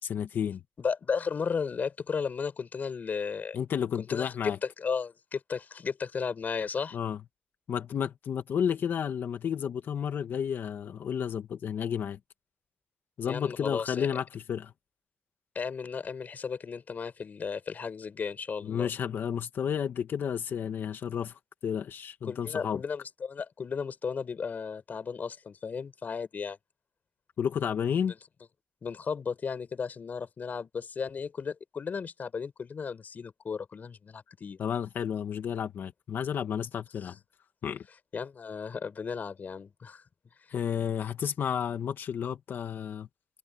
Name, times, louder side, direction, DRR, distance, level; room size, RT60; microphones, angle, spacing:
voice 1, 0.1-0.6 3.5-4.6 6.9-7.2 7.7-12.2 13.2-14.7 18.6-22.8 27.4-28.1 34.6-37.2 37.6-37.8 40.5-43.1, left 8 dB, 75° left, 1.9 m, -31 dB
voice 2, 0.8-3.6 4.1-4.3 4.6-7.0 13.2-14.1 15.5-18.9 22.2-26.6 28.0-28.2 28.8-34.6 37.0-37.1 38.1-40.0, left 6 dB, 50° left, 6.1 m, -34 dB
cardioid pair, 100°, 4 cm